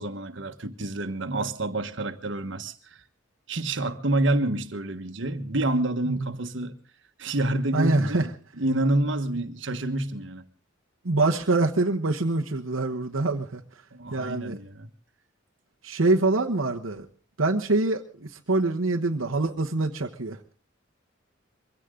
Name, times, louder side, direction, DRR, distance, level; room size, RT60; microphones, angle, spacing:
voice 1, 0.0-3.0 3.5-6.7 7.2-8.3 8.6-10.4 13.9-14.9, right 1 dB, 65° right, 1.4 m, -28 dB
voice 2, 7.7-8.2 11.0-13.6 14.1-14.6 15.8-17.1 17.4-20.4, right 2 dB, 85° right, 1.2 m, -25 dB
23.0 x 16.5 x 3.8 m
head